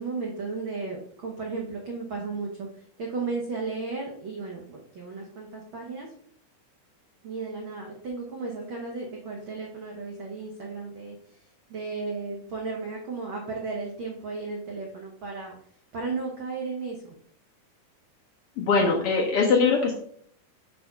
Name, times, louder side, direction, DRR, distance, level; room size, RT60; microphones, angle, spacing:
voice 1, 0.0-6.1 7.2-11.4 11.7-15.5 15.9-17.0, right 4 dB, 80° right, -1 dB, 1.1 m, -34 dB
voice 2, 18.6-20.0, left 4 dB, 70° left, -1 dB, 1.4 m, -22 dB
5.3 x 4.4 x 5.8 m, 0.64 s
omnidirectional pair, 3.8 m